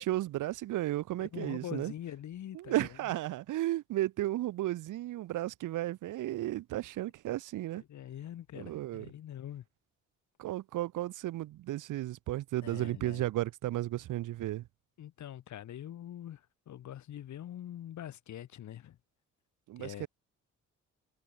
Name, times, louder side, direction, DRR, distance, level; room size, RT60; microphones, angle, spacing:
voice 1, 0.0-1.9 2.5-7.8 8.5-9.1 10.4-14.6 19.7-20.1, right 15 dB, 85° right, 3.9 m, -34 dB
voice 2, 1.2-3.1 7.8-9.6 12.6-13.2 15.0-19.0 19.8-20.1, left 11 dB, 70° left, 4.1 m, -44 dB
cardioid pair, 90°, 30 cm